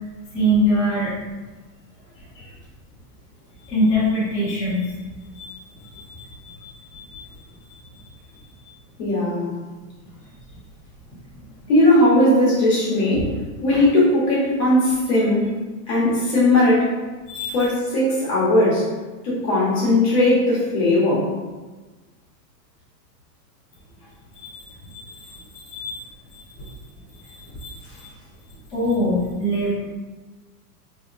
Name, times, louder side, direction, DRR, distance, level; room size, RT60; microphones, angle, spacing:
voice 1, 0.3-1.1 3.7-4.9 5.3-5.6 5.9-6.3 6.6-7.2 13.1-13.2 13.7-13.8 17.3-17.6 24.5-25.1 25.7-26.0 26.3-26.4 27.6-27.7 28.7-29.7, equal, 10° left, -13 dB, 1.0 m, -23 dB
voice 2, 9.0-9.5 11.7-13.3 13.6-15.4 15.9-16.9 17.5-18.8 19.2-21.3, left 1 dB, 35° left, -7 dB, 1.1 m, -18 dB
3.5 x 2.9 x 2.5 m, 1.3 s
supercardioid pair, 165°, 50 cm